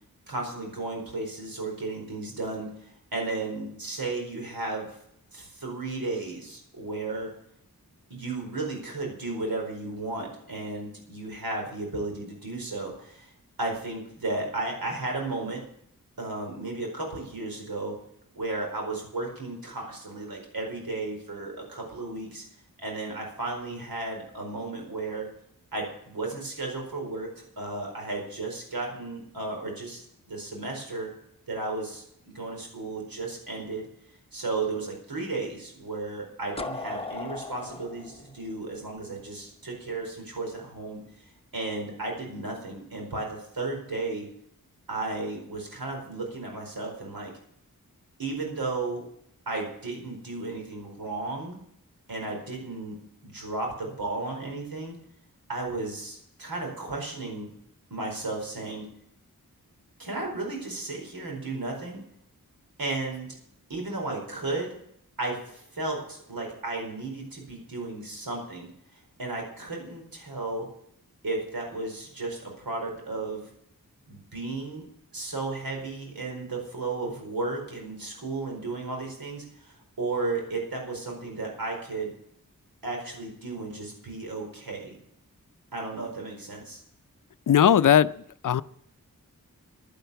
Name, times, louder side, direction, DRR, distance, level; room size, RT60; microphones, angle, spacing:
voice 1, 0.3-4.9 5.3-7.3 8.1-13.3 13.6-15.6 16.2-18.0 18.3-22.4 22.8-25.3 25.7-31.1 31.5-33.9 34.3-41.2 41.5-44.3 44.9-47.3 48.2-49.0 49.5-51.6 52.1-53.0 53.2-55.0 55.5-57.5 57.9-58.9 60.0-62.0 62.8-63.3 63.7-64.7 65.2-70.7 71.2-73.4 74.1-82.1 82.8-85.0 85.7-86.8, right 3 dB, 90° right, 4.7 m, -34 dB
sound 1, 36.6-39.4, left 3 dB, 15° left, 0.8 m, -37 dB
voice 2, 87.5-88.1 88.4-88.6, left 9 dB, 65° left, 0.5 m, -18 dB
11.0 x 10.5 x 6.9 m
wide cardioid pair, 95°, 35 cm